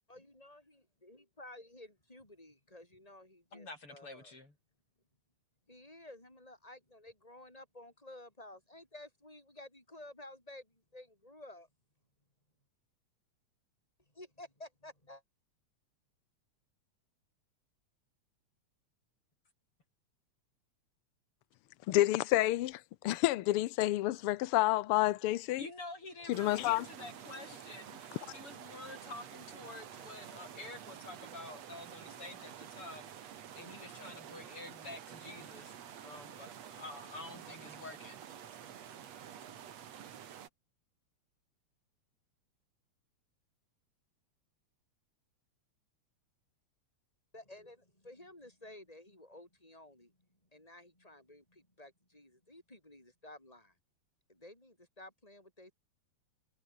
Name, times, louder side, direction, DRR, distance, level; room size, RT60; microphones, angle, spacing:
voice 1, 0.1-4.3 5.7-11.7 14.1-15.2 47.3-53.8 54.3-55.7, left 1 dB, 10° left, 7.8 m, -53 dB
voice 2, 3.5-4.5 25.6-38.2, left 2 dB, 45° left, 8.3 m, -49 dB
voice 3, 21.9-25.6 26.3-26.8, left 16 dB, 85° left, 1.2 m, -29 dB
sound 1, 26.3-40.5, right 9 dB, 65° right, 2.9 m, -49 dB
omnidirectional pair, 3.4 m